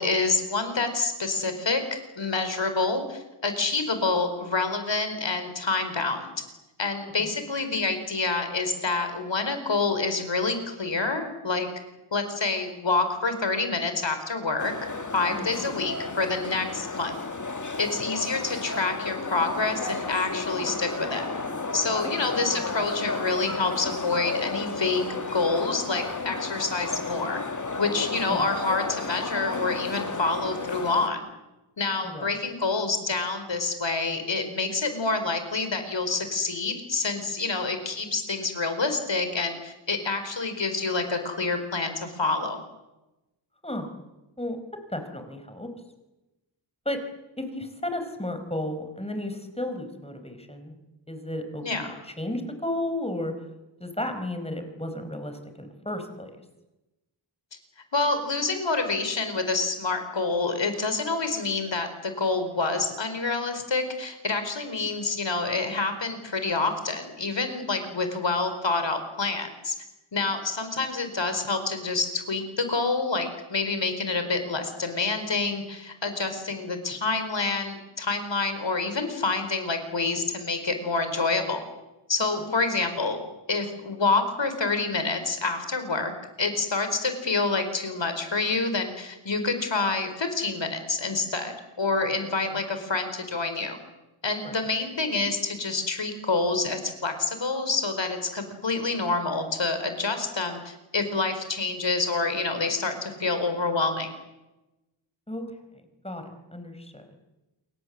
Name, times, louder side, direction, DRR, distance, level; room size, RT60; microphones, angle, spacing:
voice 1, 0.0-6.3 6.8-11.7 12.1-14.7 15.1-17.1 17.8-21.2 21.7-25.1 25.3-27.4 27.8-31.3 31.8-42.6 51.6-51.9 57.9-69.7 70.1-81.6 82.1-83.2 83.5-86.1 86.4-93.8 94.2-104.1, left 3 dB, 60° left, 8 dB, 4.6 m, -27 dB
sound 1, 14.6-31.1, left 3 dB, 35° left, 2.1 m, -32 dB
voice 2, 44.9-45.7 46.8-47.0 47.4-50.8 51.1-53.3 53.8-56.3 92.5-92.6 94.4-94.6 105.3-105.5 106.0-107.0, left 1 dB, 10° left, 7 dB, 4.6 m, -33 dB
28.0 x 23.5 x 7.7 m, 1.0 s
wide cardioid pair, 90°, 49 cm